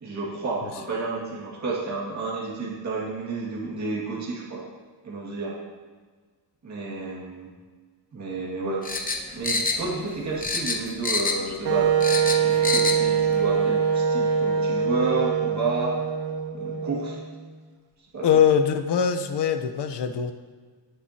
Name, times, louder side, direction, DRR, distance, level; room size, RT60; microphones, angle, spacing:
voice 1, 0.0-4.6 5.0-5.6 6.6-7.5 8.1-8.8 9.3-12.0 12.4-15.9 16.5-17.2 18.1-18.3, right 3 dB, 40° right, -6 dB, 2.2 m, -31 dB
sound 1, 8.8-10.1 10.4-11.5 11.8-13.0 13.3-13.4, left 3 dB, 20° left, 0.8 m, -26 dB
Wind instrument woodwind instrument, 11.6-17.5, right 7 dB, 85° right, 1.2 m, -24 dB
voice 2, 18.2-20.3, left 7 dB, 65° left, 8 dB, 0.9 m, -22 dB
21.5 x 8.0 x 2.9 m, 1.5 s
wide cardioid pair, 155°, 44 cm